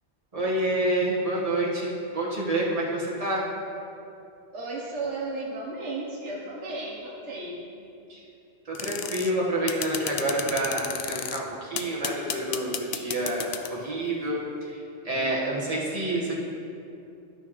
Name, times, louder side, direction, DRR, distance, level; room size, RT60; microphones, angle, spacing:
voice 1, 0.3-3.4 8.1-8.2 8.6-16.3, right 1 dB, 30° right, -5 dB, 1.6 m, -28 dB
voice 2, 4.5-7.7, right 2 dB, 80° right, -3 dB, 1.4 m, -34 dB
sound 1, 8.7-9.3 9.7-11.4 11.8-13.8, left 9 dB, 65° left, 0.8 m, -32 dB
13.5 x 6.2 x 3.1 m, 2.7 s
omnidirectional pair, 1.2 m